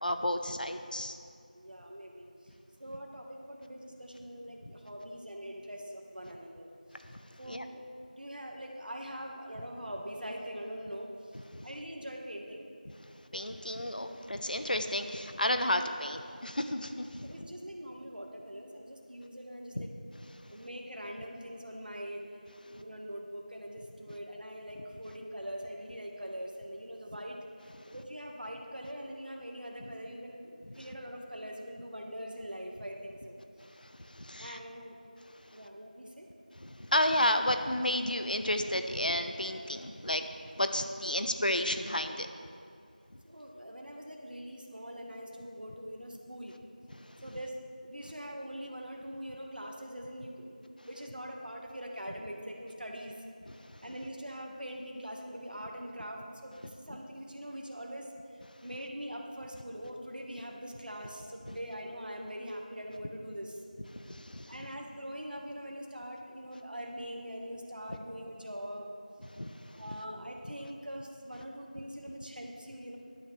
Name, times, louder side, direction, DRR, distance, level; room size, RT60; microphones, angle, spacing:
voice 1, 0.0-1.2 7.5-7.7 11.5-11.7 13.3-17.3 19.8-19.9 30.8-30.9 33.8-34.6 36.5-40.3 40.6-42.3 53.5-53.8 61.4-61.6 64.0-64.5 69.3-69.5 69.9-70.0, left 1 dB, 70° left, 7 dB, 0.8 m, -32 dB
voice 2, 1.5-2.3 2.8-6.7 7.4-7.8 8.1-11.1 11.6-12.7 17.2-19.9 20.5-22.2 22.6-27.4 27.8-33.4 34.4-35.0 35.5-36.3 43.2-46.5 47.2-47.5 47.8-50.5 50.8-53.2 53.8-58.1 58.6-63.6 64.5-68.9 69.8-73.0, equal, 75° right, 1 dB, 1.5 m, -43 dB
14.0 x 11.5 x 3.3 m, 2.4 s
figure-of-eight pair, 175°, 5 cm